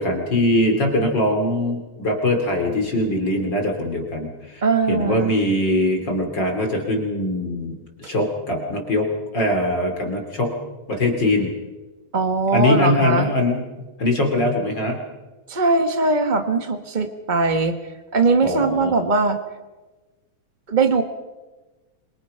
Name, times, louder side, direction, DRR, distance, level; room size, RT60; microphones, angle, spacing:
voice 1, 0.0-10.5 10.9-11.5 12.5-13.6 14.0-15.0 18.4-18.9, left 1 dB, 40° left, 2 dB, 3.7 m, -22 dB
voice 2, 4.6-5.4 12.1-13.3 15.5-17.8 18.1-19.4 20.7-21.0, right 3 dB, 60° right, 7 dB, 0.4 m, -20 dB
26.5 x 24.0 x 5.6 m, 1.2 s
omnidirectional pair, 3.4 m